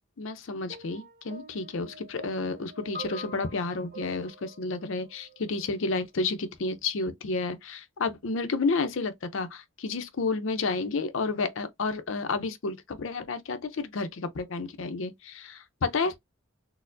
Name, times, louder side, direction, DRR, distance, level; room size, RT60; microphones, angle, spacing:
voice 1, 0.2-16.1, left 3 dB, 70° left, 0.6 m, -31 dB
sound 1, 0.7-5.8 6.7-6.9, right 2 dB, 45° right, 0.6 m, -46 dB
4.2 x 2.0 x 2.5 m
head